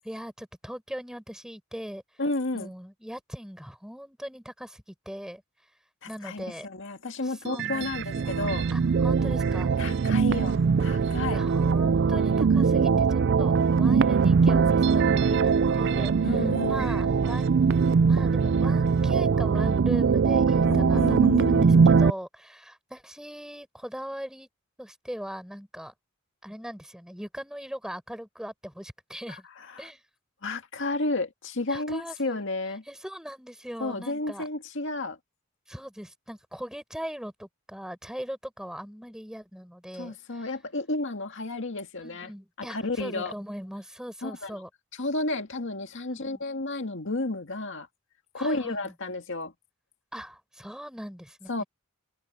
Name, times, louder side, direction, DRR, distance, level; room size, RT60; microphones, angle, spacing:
voice 1, 0.0-2.0 2.5-5.4 6.1-6.7 7.2-8.2 8.7-10.4 11.0-17.6 18.0-24.5 24.8-25.9 26.4-29.5 29.8-30.0 31.7-32.4 32.9-34.5 35.7-40.5 42.0-44.7 46.0-46.4 48.4-48.9 50.1-51.6, equal, 5° right, 5.7 m, -40 dB
voice 2, 2.2-2.7 6.0-8.7 9.8-11.4 16.2-16.9 20.6-22.0 29.3-29.4 29.7-29.9 30.4-32.8 33.8-35.2 40.0-42.3 42.6-43.3 44.2-44.5 45.0-47.9 48.3-49.5 51.5-51.6, left 2 dB, 60° left, 2.0 m, -32 dB
sound 1, 7.5-22.1, right 5 dB, 55° right, 0.4 m, -22 dB
head